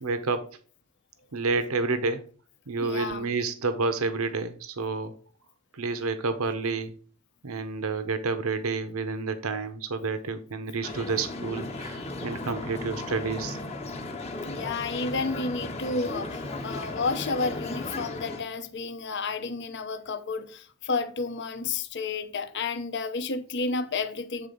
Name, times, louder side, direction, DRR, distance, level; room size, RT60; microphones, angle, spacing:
voice 1, 0.0-0.5 1.3-2.2 2.7-5.1 5.7-6.9 7.4-13.6 15.1-15.2, right 4 dB, 85° right, 0.8 m, -29 dB
voice 2, 2.8-3.3 14.5-24.5, left 4 dB, 55° left, 0.7 m, -31 dB
sound 1, 10.8-18.4, left 2 dB, 30° left, 0.9 m, -36 dB
8.1 x 3.9 x 5.2 m
head